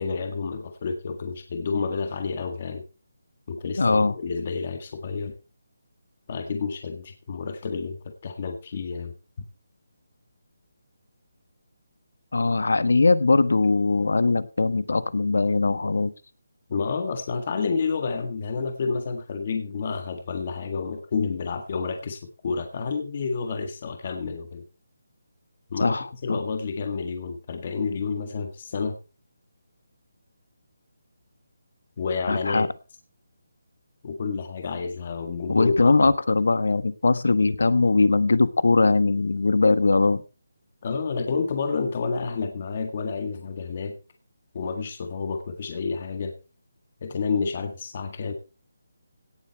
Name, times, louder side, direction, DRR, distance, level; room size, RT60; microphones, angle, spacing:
voice 1, 0.0-2.8 3.5-5.3 6.3-9.1 16.7-24.6 25.7-26.0 26.2-29.0 32.0-32.7 34.0-36.1 40.8-44.0 44.5-46.3 47.0-48.3, left 5 dB, 30° left, 5 dB, 1.7 m, -29 dB
voice 2, 3.8-4.1 12.3-16.1 25.8-26.4 32.3-32.7 35.5-40.2, left 3 dB, 80° left, 14 dB, 1.3 m, -21 dB
17.5 x 7.6 x 4.6 m, 0.32 s
hypercardioid pair, 180°, 0 cm